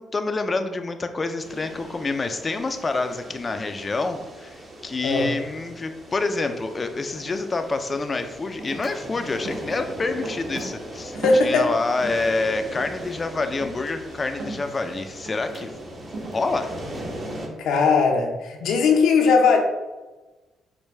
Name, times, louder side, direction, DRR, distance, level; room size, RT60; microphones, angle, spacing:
voice 1, 0.0-15.7 16.3-16.7, left 3 dB, 30° left, 8 dB, 0.4 m, -27 dB
sound 1, 1.4-17.5, right 1 dB, 35° right, 0.9 m, -39 dB
sound 2, 7.6-7.7 8.1-12.4 12.8-16.7, right 1 dB, 65° right, 0.9 m, -38 dB
voice 2, 11.1-11.7 17.6-19.6, left 4 dB, 80° left, 3 dB, 0.6 m, -19 dB
4.6 x 2.2 x 3.2 m, 1.2 s
cardioid pair, 90°, 0 cm